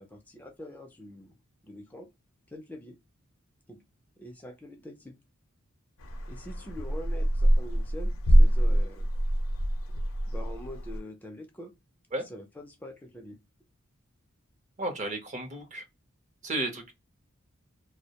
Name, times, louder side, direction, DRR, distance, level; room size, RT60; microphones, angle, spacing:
voice 1, 0.0-1.4 1.6-2.1 2.5-3.0 3.7-3.8 4.2-5.2 6.3-9.1 10.3-11.7 12.2-13.4, left 1 dB, 10° left, 0.4 m, -44 dB
sound 1, 6.0-11.0, equal, 80° left, 0.5 m, -25 dB
voice 2, 14.8-15.8 16.4-16.9, right 2 dB, 35° right, 0.6 m, -33 dB
2.2 x 2.0 x 2.8 m
head